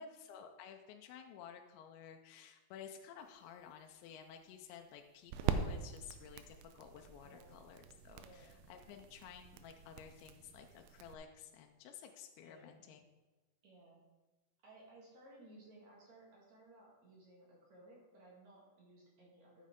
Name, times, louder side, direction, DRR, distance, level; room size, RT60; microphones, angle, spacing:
voice 1, 0.0-13.0, left 8 dB, 80° left, 4 dB, 2.6 m, -53 dB
sound 1, 3.2-11.1, right 7 dB, 85° right, 3.1 m, -43 dB
voice 2, 7.2-7.6 8.1-8.5 12.4-12.8 13.6-14.0 14.6-19.7, right 1 dB, 50° right, -3 dB, 2.2 m, -60 dB
12.0 x 7.3 x 3.7 m, 1.2 s
omnidirectional pair, 5.6 m